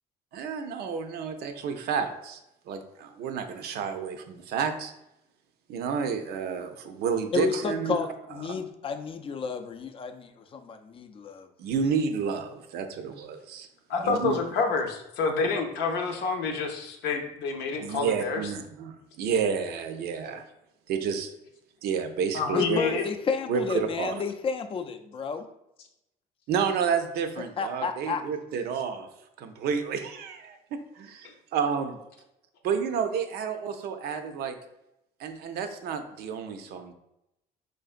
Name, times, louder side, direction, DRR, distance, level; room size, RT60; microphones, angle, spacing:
voice 1, 0.3-2.4 2.7-4.9 5.7-8.0 8.4-8.6 11.6-13.7 14.0-14.4 17.8-20.4 20.9-21.3 21.8-22.8 23.5-24.1 26.5-29.1 29.4-31.9 32.6-34.6 35.2-36.9, right 6 dB, 70° right, 7 dB, 0.5 m, -30 dB
voice 2, 7.3-11.5 22.5-25.5 27.6-28.2, left 5 dB, 35° left, 7 dB, 0.4 m, -31 dB
voice 3, 13.9-18.4 22.3-23.0, left 4 dB, 85° left, 3 dB, 0.6 m, -28 dB
3.8 x 3.3 x 2.4 m, 0.86 s
cardioid pair, 110°, 17 cm